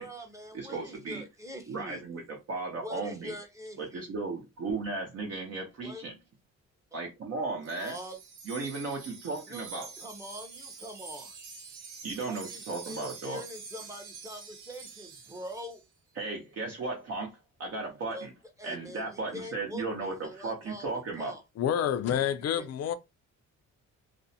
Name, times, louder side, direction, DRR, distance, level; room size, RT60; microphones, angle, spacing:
voice 1, 0.0-2.0 2.8-4.1 5.8-6.0 6.9-7.0 7.8-8.2 9.5-11.4 12.2-15.8 18.1-18.3 18.6-21.4 22.2-22.7, equal, 10° right, 0.7 m, -44 dB
voice 2, 0.5-1.2 1.7-3.3 3.8-6.2 6.9-8.0 8.5-9.9 12.0-13.4 16.2-18.3 18.6-21.3, right 3 dB, 55° right, 0.7 m, -35 dB
Wind chime, 7.6-15.8, right 5 dB, 85° right, 0.6 m, -46 dB
voice 3, 21.6-22.9, left 9 dB, 55° left, 0.4 m, -28 dB
2.5 x 2.0 x 2.7 m
cardioid pair, 90°, 30 cm